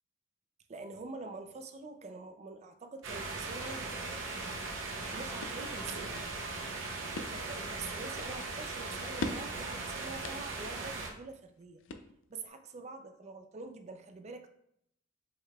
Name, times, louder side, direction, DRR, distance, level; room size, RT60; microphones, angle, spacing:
voice 1, 0.7-6.8 7.3-11.8 12.3-14.5, right 3 dB, 35° right, 7 dB, 0.4 m, -46 dB
sound 1, 3.0-11.1, right 3 dB, 65° right, 0.7 m, -39 dB
sound 2, 5.5-12.5, left 3 dB, 65° left, 0.4 m, -45 dB
5.3 x 3.8 x 2.3 m, 0.73 s
head